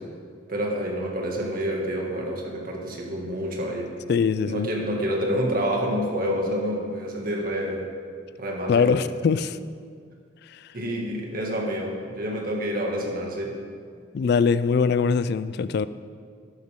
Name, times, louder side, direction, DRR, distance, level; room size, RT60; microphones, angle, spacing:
voice 1, 0.5-3.9 4.5-7.8 8.4-9.1 10.7-13.5, equal, 50° right, -1 dB, 2.1 m, -28 dB
voice 2, 4.1-4.7 8.7-9.6 14.1-15.9, left 5 dB, 55° left, 15 dB, 0.3 m, -22 dB
12.5 x 12.0 x 3.7 m, 2.1 s
head